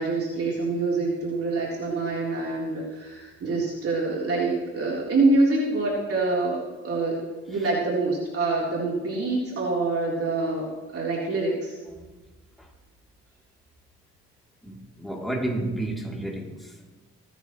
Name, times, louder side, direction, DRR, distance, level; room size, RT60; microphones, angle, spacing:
voice 1, 0.0-7.2 7.5-11.8, right 3 dB, 50° right, -4 dB, 3.7 m, -26 dB
voice 2, 14.6-16.7, right 1 dB, ahead, -1 dB, 3.2 m, -31 dB
28.0 x 10.0 x 3.2 m, 1.2 s
cardioid pair, 90°, 30 cm